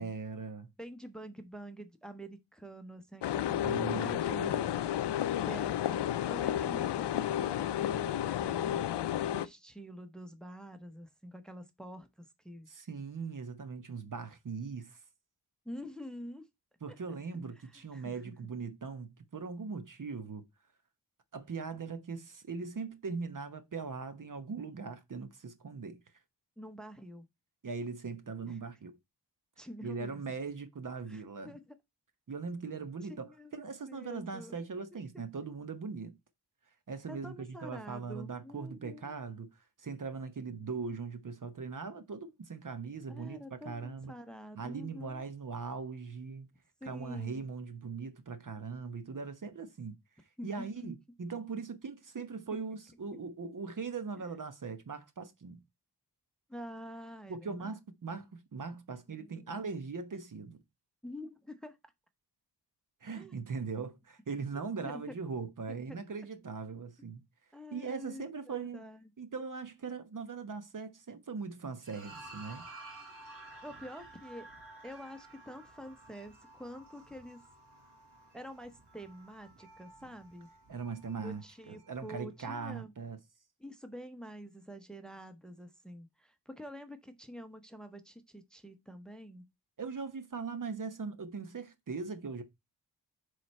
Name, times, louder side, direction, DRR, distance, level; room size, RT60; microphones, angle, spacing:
voice 1, 0.0-0.7 3.6-4.2 4.4-4.7 12.7-15.0 16.8-20.5 21.3-26.0 27.6-29.0 29.8-31.6 32.3-36.2 36.9-44.1 44.6-46.5 46.8-49.9 50.4-55.6 57.3-60.6 63.0-67.2 67.7-68.8 69.2-72.6 80.7-81.4 81.7-83.2 89.8-92.4, right 5 dB, 50° right, 1.0 m, -40 dB
voice 2, 0.8-4.6 5.4-8.9 9.3-12.7 15.6-16.5 16.9-17.2 17.6-18.4 26.6-27.3 28.5-28.6 29.6-30.4 31.1-31.8 33.1-33.5 33.8-34.6 35.1-35.2 37.1-39.2 43.1-45.3 46.8-47.5 50.4-50.9 52.5-52.6 56.5-57.8 59.1-59.6 61.0-61.8 63.1-63.4 64.5-65.4 65.9-66.0 67.5-69.0 73.6-74.5 74.8-77.4 78.3-80.5 81.2-82.9 83.6-89.5, equal, ahead, 0.9 m, -47 dB
sound 1, 3.2-9.5, left 11 dB, 70° left, 0.5 m, -32 dB
sound 2, 71.8-78.4, right 2 dB, 30° right, 3.4 m, -53 dB
sound 3, 72.0-82.2, right 2 dB, 70° right, 1.6 m, -57 dB
7.5 x 3.4 x 4.2 m
cardioid pair, 55°, 42 cm